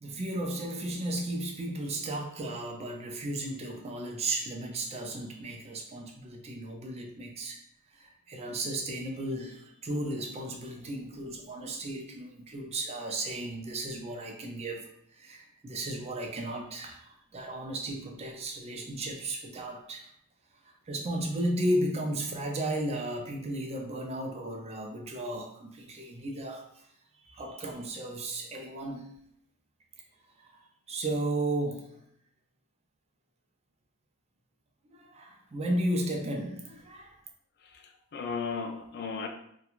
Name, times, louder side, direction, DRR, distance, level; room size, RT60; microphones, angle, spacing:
voice 1, 0.0-7.6 7.9-14.8 15.2-20.1 20.9-26.8 27.2-29.1 30.4-30.5 30.9-31.9 34.9-37.1, right 1 dB, 30° right, 2 dB, 0.4 m, -34 dB
voice 2, 37.6-39.3, left 5 dB, 50° left, 4 dB, 0.4 m, -36 dB
2.9 x 2.2 x 2.4 m, 0.70 s
head